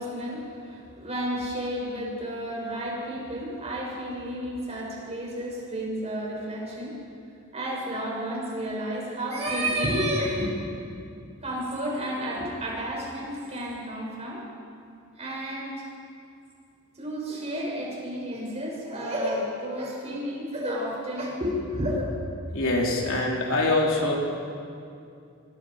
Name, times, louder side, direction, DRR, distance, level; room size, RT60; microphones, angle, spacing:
voice 1, 0.0-6.9 7.5-10.5 11.4-14.4 15.2-15.9 17.0-22.0, equal, 30° right, -4 dB, 7.3 m, -31 dB
voice 2, 22.5-24.1, left 2 dB, 65° left, -1 dB, 3.8 m, -24 dB
27.0 x 25.0 x 5.1 m, 2.5 s
head